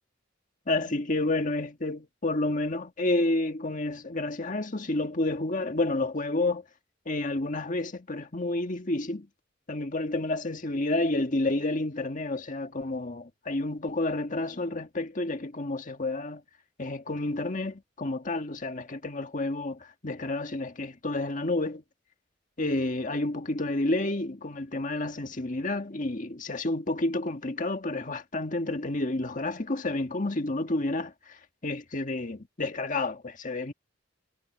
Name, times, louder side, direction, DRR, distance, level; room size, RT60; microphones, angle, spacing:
voice 1, 0.7-6.6 7.1-9.3 9.7-16.4 16.8-21.8 22.6-31.4 31.6-33.7, left 2 dB, 40° left, 1.8 m, -30 dB
head